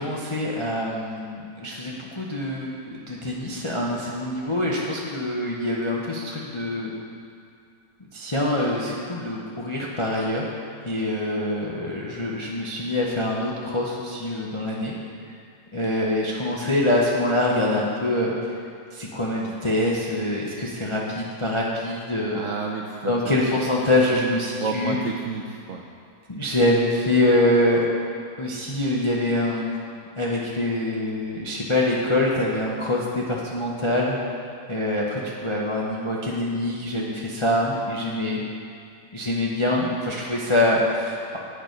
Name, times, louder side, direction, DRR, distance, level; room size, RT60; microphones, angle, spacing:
voice 1, 0.0-6.9 8.1-10.5 10.8-14.9 15.7-18.3 18.9-22.4 23.0-24.9 26.3-27.9 28.4-29.7 30.2-34.2 34.7-38.4 39.1-41.4, left 1 dB, 50° left, -4 dB, 0.3 m, -24 dB
voice 2, 22.3-23.4 24.0-24.2 24.6-25.8, right 4 dB, 75° right, 1 dB, 0.7 m, -31 dB
8.8 x 6.6 x 5.1 m, 2.3 s
omnidirectional pair, 1.9 m